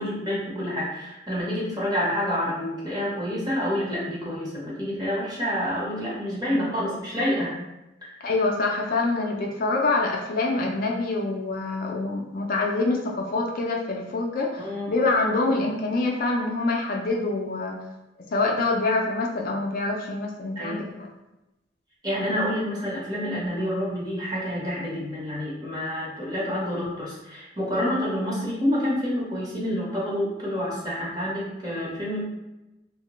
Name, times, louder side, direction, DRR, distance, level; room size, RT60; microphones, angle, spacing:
voice 1, 0.0-7.6 8.0-8.1 14.6-14.9 20.6-20.9 22.0-32.2, equal, 20° right, -6 dB, 0.9 m, -28 dB
voice 2, 8.2-17.8 18.3-21.1, left 3 dB, 50° left, 0 dB, 0.4 m, -25 dB
3.0 x 2.1 x 2.9 m, 0.98 s
head